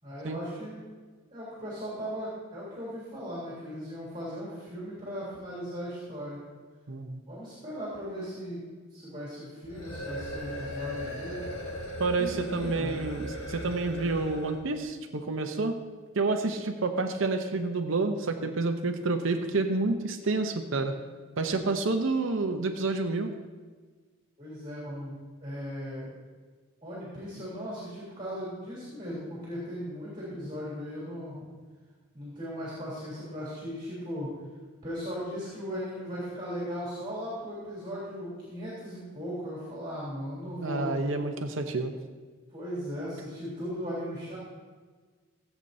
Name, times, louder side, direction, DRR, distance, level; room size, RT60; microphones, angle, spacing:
voice 1, 0.0-0.8 1.3-6.4 7.3-11.5 12.2-13.0 24.4-25.2 25.4-26.1 26.8-31.5 32.1-34.3 34.8-41.0 42.5-44.4, equal, 25° right, -8 dB, 3.3 m, -37 dB
voice 2, 6.9-7.2 12.0-15.8 16.2-20.9 21.4-23.3 40.6-41.9, right 3 dB, 65° right, 6 dB, 0.8 m, -29 dB
sound 1, 9.6-14.6, equal, 85° left, 2.6 m, -38 dB
16.5 x 8.2 x 2.7 m, 1.4 s
head